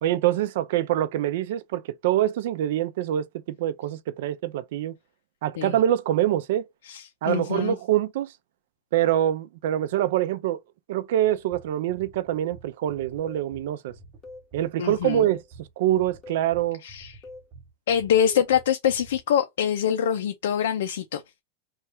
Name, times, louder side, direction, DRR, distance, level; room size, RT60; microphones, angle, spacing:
voice 1, 0.0-5.0 5.4-6.7 7.2-8.3 8.9-10.6 10.9-13.9 14.5-16.8, right 12 dB, 60° right, 0.4 m, -25 dB
voice 2, 6.8-7.8 14.8-15.3 16.8-17.1 17.9-21.2, left 9 dB, 85° left, 0.5 m, -24 dB
sound 1, 11.3-19.2, right 3 dB, 25° right, 0.7 m, -49 dB
sound 2, 13.2-13.5 14.2-14.5 15.2-15.5 16.2-16.5 17.2-17.5 18.2-18.6, left 3 dB, 20° left, 0.5 m, -43 dB
3.2 x 2.3 x 4.3 m
supercardioid pair, 175°, 0 cm